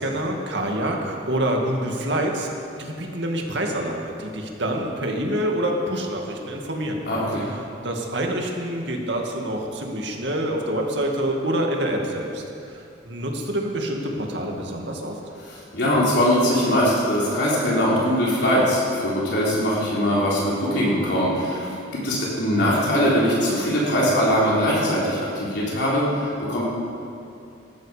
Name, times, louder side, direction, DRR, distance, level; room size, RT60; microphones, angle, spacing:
voice 1, 0.0-2.5 2.8-7.0 7.4-15.2, right 1 dB, 65° right, 1 dB, 2.2 m, -26 dB
voice 2, 7.1-7.5 15.5-21.7 21.9-26.6, equal, 65° left, -6 dB, 3.8 m, -21 dB
18.5 x 13.5 x 5.1 m, 2.6 s
head